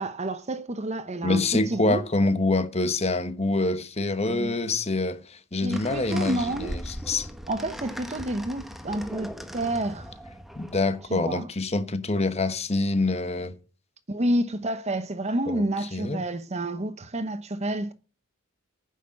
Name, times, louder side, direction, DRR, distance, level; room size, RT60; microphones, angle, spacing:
voice 1, 0.0-2.0 4.3-4.5 5.6-6.8 7.5-10.1 11.1-11.5 14.1-17.9, right 1 dB, 30° right, 0.9 m, -29 dB
voice 2, 1.2-7.3 10.6-13.5 15.5-15.6 15.9-16.2, left 2 dB, 30° left, 1.1 m, -26 dB
sound 1, 5.7-11.1, equal, ahead, 1.2 m, -39 dB
9.7 x 6.7 x 7.6 m
head